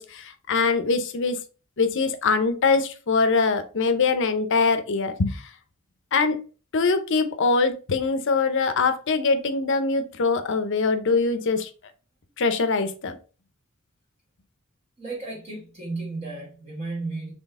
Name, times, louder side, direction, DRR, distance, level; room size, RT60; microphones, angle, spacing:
voice 1, 0.0-1.4 1.8-5.4 6.1-6.4 6.7-11.7 12.4-13.2, left 4 dB, 60° left, 0.6 m, -23 dB
voice 2, 15.0-17.3, right 3 dB, 30° right, 1.2 m, -33 dB
4.0 x 3.4 x 3.5 m
head